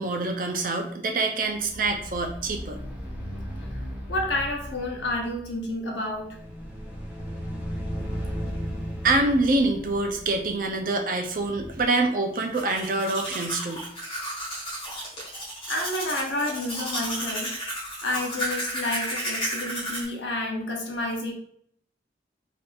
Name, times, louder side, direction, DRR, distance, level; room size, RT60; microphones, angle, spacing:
voice 1, 0.0-2.8 9.0-13.8, right 2 dB, 50° right, 4 dB, 0.5 m, -25 dB
sound 1, 1.5-11.8, equal, 10° right, 0.7 m, -36 dB
voice 2, 4.1-6.4 15.7-17.6 18.0-21.3, left 1 dB, 75° left, 1 dB, 0.8 m, -30 dB
Domestic sounds home sounds, 12.3-20.0, right 1 dB, 30° left, 1.4 m, -33 dB
3.7 x 2.7 x 2.4 m, 0.65 s
head